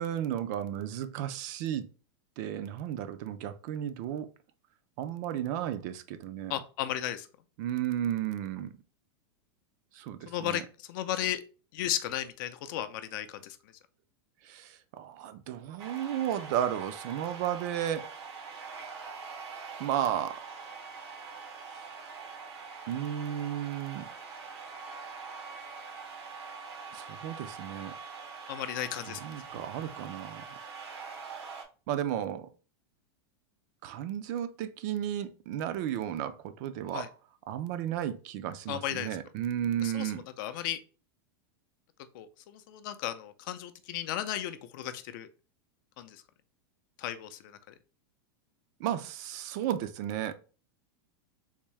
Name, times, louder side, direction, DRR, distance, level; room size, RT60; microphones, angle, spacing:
voice 1, 0.0-1.9 2.4-4.3 5.0-6.6 7.6-8.8 9.9-10.6 14.4-18.1 19.8-20.4 22.9-24.0 26.9-27.9 29.1-30.5 31.9-32.5 33.8-37.1 37.5-40.2 48.8-50.3, right 10 dB, 45° right, 0.3 m, -33 dB
voice 2, 6.5-7.3 10.3-11.4 11.7-13.6 28.5-29.2 36.9-37.1 38.7-39.2 39.8-40.8 42.1-45.3 46.0-46.2 47.0-47.7, left 12 dB, 50° left, 0.4 m, -35 dB
sound 1, 15.8-31.6, right 5 dB, 90° right, 0.9 m, -44 dB
3.5 x 2.7 x 3.1 m
supercardioid pair, 155°, 14 cm